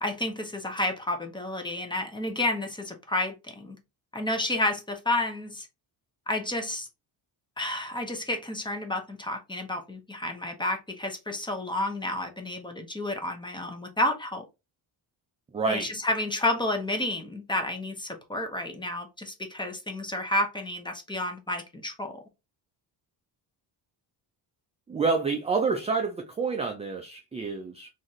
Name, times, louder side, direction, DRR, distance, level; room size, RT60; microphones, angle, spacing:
voice 1, 0.0-3.8 4.1-5.7 6.3-6.9 7.6-14.4 15.7-22.1, left 1 dB, 10° left, 0.7 m, -30 dB
voice 2, 15.5-15.9 24.9-27.9, right 4 dB, 15° right, 0.3 m, -28 dB
4.0 x 2.6 x 3.0 m
cardioid pair, 150°, 45 cm